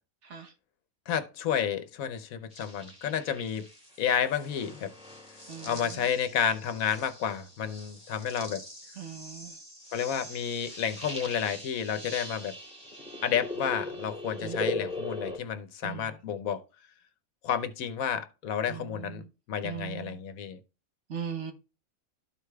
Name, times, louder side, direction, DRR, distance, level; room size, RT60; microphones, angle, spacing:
voice 1, 0.2-0.5 5.5-6.0 9.0-9.6 14.4-14.8 15.8-16.1 18.7-19.3 19.6-20.2 21.1-21.5, right 8 dB, 60° right, 1.2 m, -40 dB
voice 2, 1.1-3.7 4.0-4.9 5.6-8.6 9.9-12.5 13.2-16.6 17.4-20.6, left 8 dB, 75° left, 1.2 m, -31 dB
sound 1, 2.5-15.4, left 2 dB, 5° right, 2.0 m, -40 dB
13.0 x 4.8 x 2.3 m
omnidirectional pair, 1.5 m